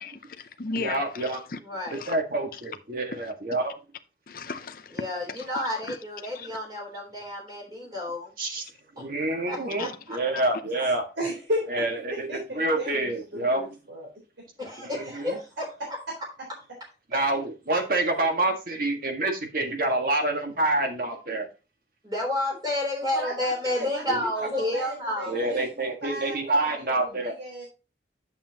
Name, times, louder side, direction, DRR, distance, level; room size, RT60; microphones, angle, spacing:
voice 1, 0.0-1.6 1.9-2.2 3.1-3.2 4.3-5.5 5.9-6.0 6.3-6.5 9.8-9.9, left 4 dB, 50° left, 0.5 m, -36 dB
voice 2, 0.8-1.4 1.9-3.7 8.4-8.6 9.0-11.0 11.7-13.7 14.9-15.4 17.1-21.5 24.1-24.2 25.3-27.3, right 2 dB, 50° right, 1.6 m, -27 dB
voice 3, 1.6-2.0 4.9-8.3 9.0-9.1 9.5-10.2 14.6-16.0 18.2-18.3 22.0-25.4, left 1 dB, 20° right, 3.6 m, -31 dB
voice 4, 11.2-11.6 12.3-14.1 23.1-24.3 24.5-25.7 26.0-27.6, equal, 80° right, 3.8 m, -35 dB
8.7 x 7.2 x 2.9 m
head